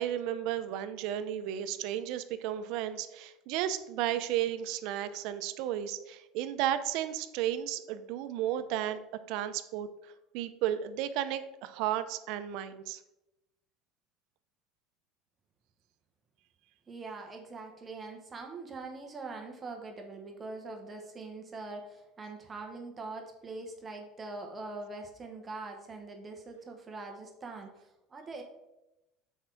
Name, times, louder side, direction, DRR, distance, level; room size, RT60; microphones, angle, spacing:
voice 1, 0.0-9.0 9.3-13.0, right 11 dB, 60° right, 11 dB, 0.6 m, -33 dB
voice 2, 16.9-28.4, right 3 dB, 20° right, 3 dB, 0.9 m, -43 dB
6.5 x 4.5 x 5.9 m, 0.94 s
cardioid pair, 165°, 0 cm